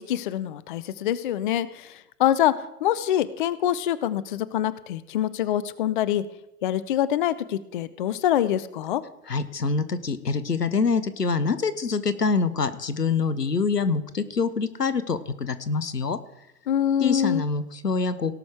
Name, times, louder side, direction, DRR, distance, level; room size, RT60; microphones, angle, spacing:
voice 1, 0.0-2.5 2.8-6.2 6.6-9.0 16.7-17.4, left 11 dB, 35° left, 16 dB, 0.4 m, -25 dB
voice 2, 9.3-16.2 17.0-18.3, left 4 dB, 85° left, 13 dB, 1.0 m, -25 dB
18.0 x 6.1 x 4.8 m, 0.93 s
figure-of-eight pair, 110°, 46 cm